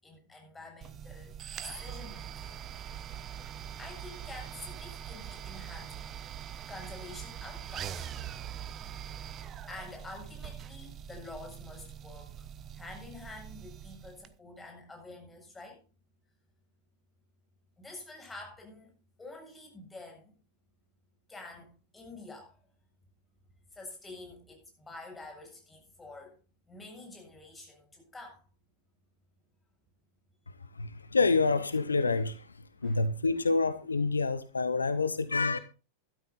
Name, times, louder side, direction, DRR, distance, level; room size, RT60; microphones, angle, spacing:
voice 1, 0.0-2.6 2.9-3.0 3.8-5.9 6.6-8.1 9.0-9.3 9.7-12.5 12.7-15.8 17.8-18.9 19.2-20.3 21.3-22.6 23.7-26.4 26.7-28.5 32.8-33.0, left 2 dB, 10° left, 7.4 m, -48 dB
sound 1, 0.8-14.3, right 9 dB, 30° right, 1.0 m, -43 dB
voice 2, 30.8-32.5 32.8-35.6, left 3 dB, 75° left, 0.8 m, -27 dB
13.0 x 12.5 x 4.1 m
figure-of-eight pair, 90°, 0 cm